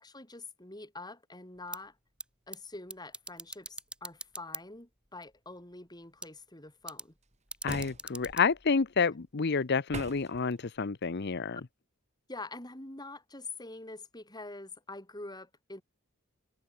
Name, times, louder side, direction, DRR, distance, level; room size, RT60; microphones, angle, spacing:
voice 1, 0.0-2.0 2.5-7.1 12.3-15.8, left 2 dB, 20° left, 4.5 m, -45 dB
sound 1, 1.5-9.4, right 2 dB, 5° right, 4.0 m, -47 dB
voice 2, 7.6-11.6, left 5 dB, 50° left, 0.7 m, -29 dB
sound 2, 7.7-8.4 9.9-10.4, right 2 dB, 30° right, 4.5 m, -40 dB
head